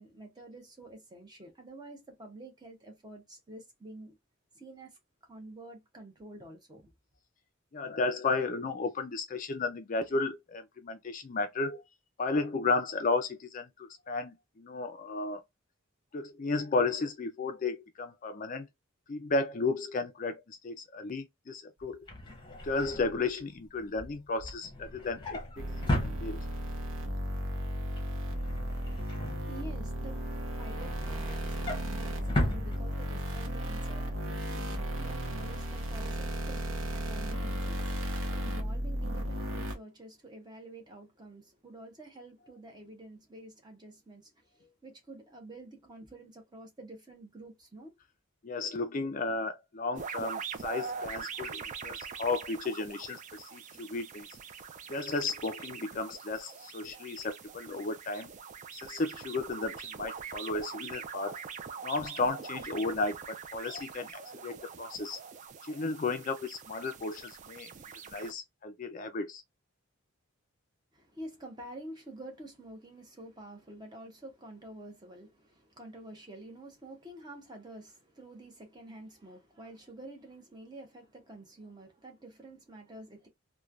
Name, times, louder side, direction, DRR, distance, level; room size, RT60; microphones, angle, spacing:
voice 1, 0.0-4.2 4.5-5.0 5.3-6.9 29.3-47.9 70.9-83.3, right 1 dB, 20° right, 0.8 m, -49 dB
voice 2, 7.7-11.8 12.2-15.4 16.1-18.7 19.1-22.1 22.6-25.7 26.0-26.4 48.4-54.3 54.9-58.3 58.7-61.4 61.8-65.2 65.6-67.7 68.1-69.4, left 3 dB, 40° left, 0.4 m, -34 dB
Drawer open or close, 21.8-26.8 27.2-27.5 27.8-30.0 30.4-33.4 33.8-34.0 34.2-34.3, left 1 dB, 25° left, 0.8 m, -37 dB
sound 1, 25.6-39.8, equal, 65° right, 0.8 m, -35 dB
sound 2, 49.9-68.3, right 6 dB, 35° right, 0.3 m, -43 dB
3.1 x 2.2 x 2.3 m
head